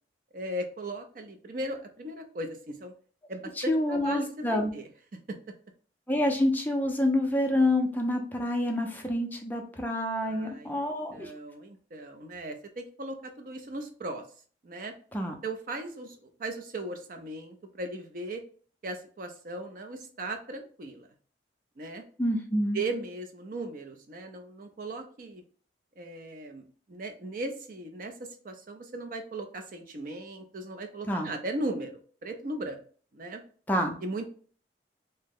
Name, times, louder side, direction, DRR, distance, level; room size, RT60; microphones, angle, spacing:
voice 1, 0.3-2.9 3.3-4.9 5.3-5.4 10.2-10.8 11.1-14.2 14.6-14.9 15.4-18.4 18.8-21.1 21.8-22.0 22.7-25.4 26.0-32.8 33.1-33.4 34.0-34.3, right 2 dB, 45° right, 5 dB, 0.4 m, -37 dB
voice 2, 3.6-4.7 6.1-11.3 15.1-15.3 22.2-22.8 31.1-31.3 33.7-34.0, left 1 dB, 10° left, 2 dB, 0.4 m, -27 dB
2.7 x 2.0 x 3.6 m, 0.43 s
head